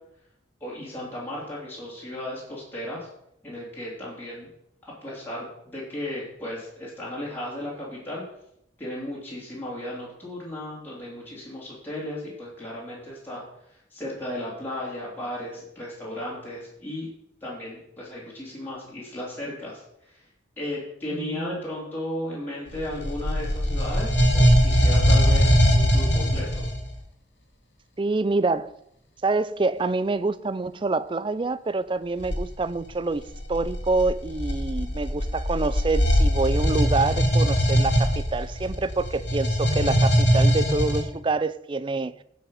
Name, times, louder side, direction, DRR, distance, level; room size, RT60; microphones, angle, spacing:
voice 1, 0.6-3.1 3.4-4.5 4.8-8.2 8.8-13.4 13.7-17.1 17.4-20.2 20.6-26.7, left 1 dB, 10° left, 3.4 m, -35 dB
voice 2, 21.1-21.6 28.0-28.7 29.2-42.1, right 3 dB, 25° right, 0.4 m, -26 dB
sound 1, 22.8-26.9 32.2-32.4 33.2-41.0, equal, 65° left, 2.2 m, -21 dB
15.5 x 5.8 x 5.6 m
head